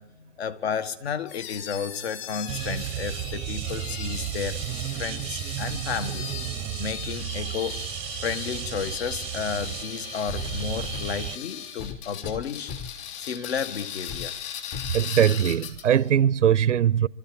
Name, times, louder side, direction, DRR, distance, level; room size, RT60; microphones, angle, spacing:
voice 1, 0.0-4.6 4.9-6.3 6.8-7.8 8.2-12.7 13.2-14.4, left 7 dB, 60° left, 1.7 m, -32 dB
sound 1, 1.3-16.1, left 9 dB, 40° left, 3.4 m, -38 dB
sound 2, 2.5-11.4, right 13 dB, 15° right, 0.7 m, -33 dB
sound 3, 10.3-11.2 11.8-13.1 13.6-13.7 14.1-14.3 14.7-15.0 15.7-15.8, left 6 dB, 20° left, 0.9 m, -38 dB
voice 2, 14.9-17.1, right 9 dB, 85° right, 0.7 m, -21 dB
25.5 x 13.5 x 8.7 m
hypercardioid pair, 135°, 36 cm